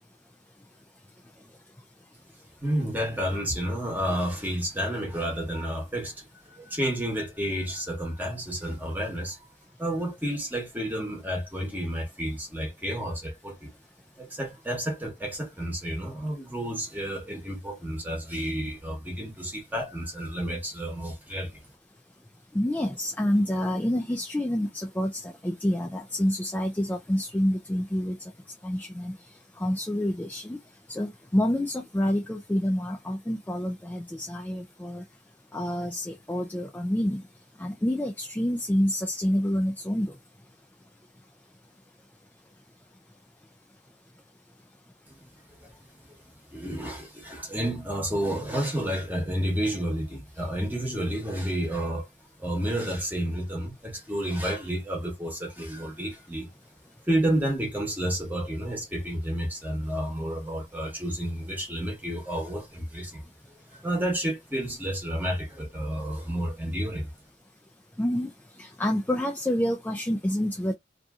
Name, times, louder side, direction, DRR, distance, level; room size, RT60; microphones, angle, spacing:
voice 1, 2.6-9.4 9.8-13.7 14.2-21.6 45.1-45.2 45.6-45.8 46.5-52.1 52.4-56.5 57.1-67.1, right 1 dB, 10° right, 1.0 m, -30 dB
voice 2, 22.5-28.2 28.6-29.1 29.6-30.6 30.9-35.0 35.5-37.2 37.6-40.1 68.0-68.3 68.6-70.7, left 1 dB, 10° left, 0.3 m, -27 dB
2.7 x 2.6 x 2.3 m
head